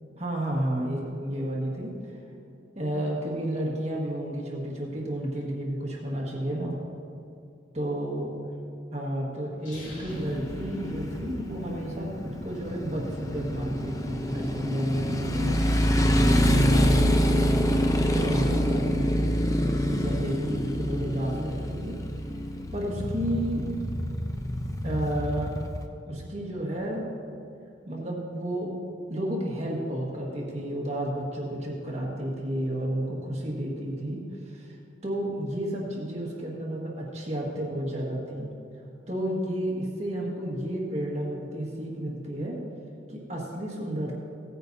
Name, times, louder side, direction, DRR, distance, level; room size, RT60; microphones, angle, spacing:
voice 1, 0.2-1.9 2.7-6.8 7.7-8.3 8.9-15.6 16.0-17.2 18.1-19.4 19.7-21.9 22.7-23.6 24.8-25.5 26.1-27.1 27.8-28.7 29.1-34.8 35.0-38.5 39.1-42.5 43.1-44.2, right 1 dB, 35° right, -3 dB, 1.6 m, -31 dB
sound 1, 9.6-11.7, equal, 65° left, 3.0 m, -43 dB
Motorcycle, 10.1-25.8, equal, 15° left, 0.6 m, -26 dB
17.0 x 9.8 x 2.7 m, 2.6 s
head